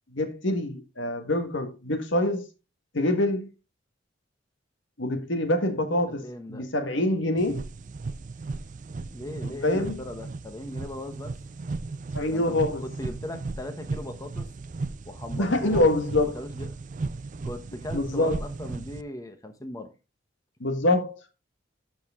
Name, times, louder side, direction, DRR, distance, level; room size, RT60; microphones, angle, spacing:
voice 1, 0.1-2.5 2.9-3.5 5.0-7.6 9.6-10.0 12.1-12.8 15.4-16.4 17.9-18.4 20.6-21.2, left 1 dB, 75° left, 1.6 m, -25 dB
voice 2, 6.1-6.7 9.1-11.3 12.3-14.5 15.0-16.0 16.3-16.8 17.4-19.9, left 1 dB, 20° left, 1.0 m, -38 dB
sound 1, 7.4-19.0, right 3 dB, 40° right, 0.4 m, -36 dB
13.0 x 4.7 x 3.6 m
head